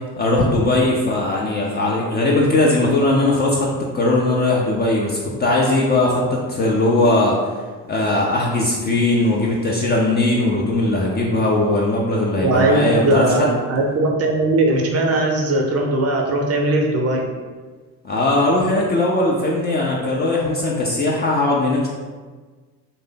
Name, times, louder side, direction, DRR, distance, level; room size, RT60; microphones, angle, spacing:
voice 1, 0.2-3.7 3.9-7.4 7.9-13.5 18.0-21.9, left 2 dB, 20° left, -3 dB, 0.4 m, -19 dB
voice 2, 12.4-17.3, right 2 dB, 30° right, 0 dB, 0.6 m, -19 dB
3.1 x 2.1 x 3.7 m, 1.4 s
figure-of-eight pair, 55°, 49 cm